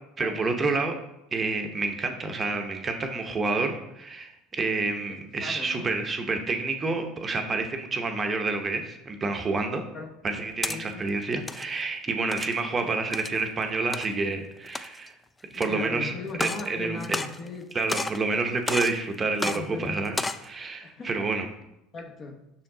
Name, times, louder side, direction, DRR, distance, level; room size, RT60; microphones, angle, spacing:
voice 1, 0.2-1.0 1.3-9.8 10.2-15.1 15.5-16.1 16.4-17.2 17.7-21.5, right 3 dB, 25° right, 5 dB, 0.7 m, -29 dB
voice 2, 5.0-5.9 9.9-10.1 10.7-11.1 15.5-17.8 19.4-20.1 20.8-21.3 21.9-22.4, left 3 dB, 40° left, 4 dB, 0.9 m, -38 dB
sound 1, 10.3-10.8 11.3-11.7 12.3-12.6 13.1-13.4 13.9-14.1 14.6-15.1 15.6-15.7 16.3-16.7 17.0-17.6 17.9-18.2 18.7-19.0 19.4-19.6 20.1-20.5, left 2 dB, 15° left, 0.3 m, -31 dB
5.7 x 4.5 x 3.8 m, 0.87 s
supercardioid pair, 100°, 0 cm